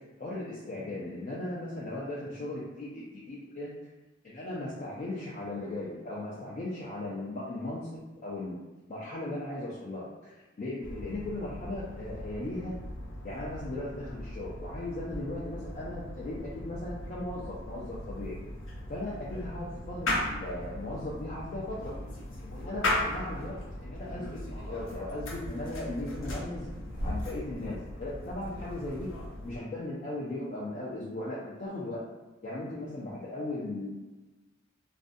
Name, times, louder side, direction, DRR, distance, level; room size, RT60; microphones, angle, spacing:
voice 1, 0.2-3.7 4.2-8.6 8.9-12.7 13.2-18.4 18.9-22.0 22.5-26.7 27.0-29.1 29.4-32.0 32.4-33.9, left 1 dB, 40° left, -7 dB, 0.4 m, -37 dB
sound 1, 10.8-29.6, left 1 dB, 80° left, 0.7 m, -38 dB
2.5 x 2.2 x 2.5 m, 1.2 s
head